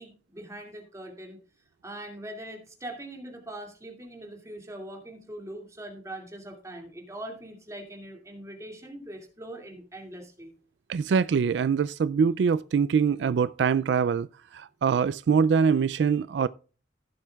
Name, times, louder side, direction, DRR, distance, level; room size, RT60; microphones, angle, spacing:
voice 1, 0.0-1.4 1.8-10.5, right 1 dB, 20° right, 2.4 m, -42 dB
voice 2, 10.9-14.3 14.5-16.5, right 6 dB, 80° right, 0.3 m, -23 dB
15.5 x 7.6 x 2.3 m
head